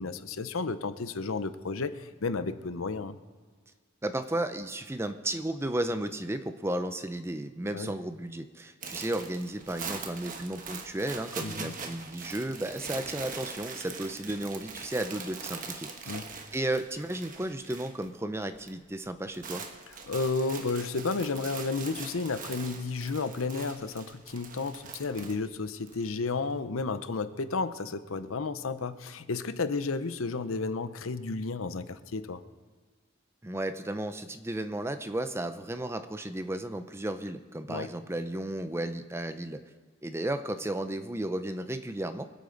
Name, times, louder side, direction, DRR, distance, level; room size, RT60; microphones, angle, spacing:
voice 1, 0.0-3.2 7.7-7.9 11.4-11.7 16.1-16.2 20.1-32.4 37.7-37.9, left 3 dB, 85° left, 12 dB, 0.7 m, -32 dB
voice 2, 4.0-16.1 16.5-19.6 33.4-39.6 40.0-42.2, right 1 dB, 10° right, 10 dB, 0.6 m, -34 dB
sound 1, 8.8-18.1 18.4-18.7 19.0-26.0, right 5 dB, 40° right, 1.1 m, -42 dB
25.0 x 8.5 x 3.9 m, 1.5 s
head